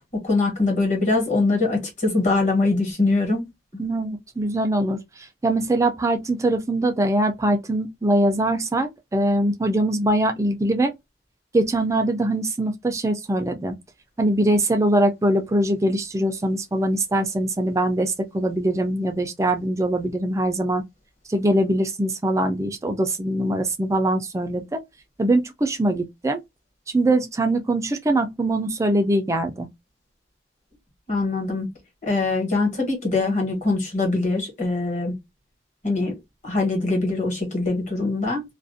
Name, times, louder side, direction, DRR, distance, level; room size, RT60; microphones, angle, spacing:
voice 1, 0.2-3.5 3.7-3.8 31.1-31.7 32.0-35.1 35.8-36.1 36.4-38.4, left 3 dB, 45° left, 1.2 m, -23 dB
voice 2, 3.8-10.9 11.5-13.7 14.2-20.8 21.3-24.8 25.2-26.4 26.9-29.7, right 1 dB, 15° right, 0.3 m, -22 dB
2.4 x 2.0 x 2.5 m
head